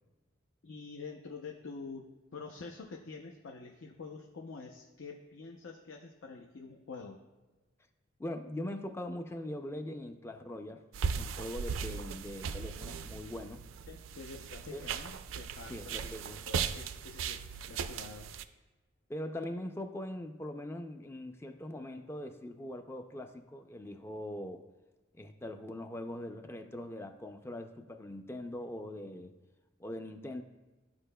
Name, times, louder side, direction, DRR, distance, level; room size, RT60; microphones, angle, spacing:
voice 1, 0.6-7.2 13.9-17.4 17.7-18.3, left 4 dB, 70° left, 1 dB, 0.6 m, -47 dB
voice 2, 8.2-10.8 11.1-13.6 14.7-14.9 15.7-16.4 19.1-24.7 25.1-29.3 29.8-30.4, left 1 dB, 10° left, 7 dB, 0.4 m, -41 dB
sound 1, 10.9-18.4, right 6 dB, 70° right, 0.4 m, -38 dB
13.0 x 4.8 x 2.2 m, 1.2 s
head